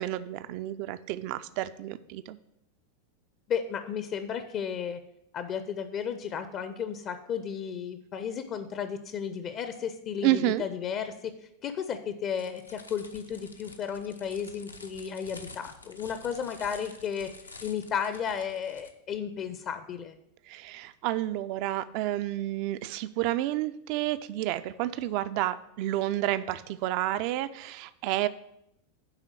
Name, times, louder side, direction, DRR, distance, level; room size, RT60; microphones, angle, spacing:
voice 1, 0.0-2.4 10.2-10.6 20.5-28.3, right 14 dB, 45° right, 14 dB, 0.4 m, -30 dB
voice 2, 3.5-5.0 5.3-11.3 11.6-17.3 17.6-20.1, left 7 dB, 35° left, 10 dB, 0.5 m, -33 dB
sound 1, 12.3-18.9, left 3 dB, 80° left, 0.6 m, -49 dB
9.7 x 3.7 x 6.2 m, 0.79 s
figure-of-eight pair, 90°, 0 cm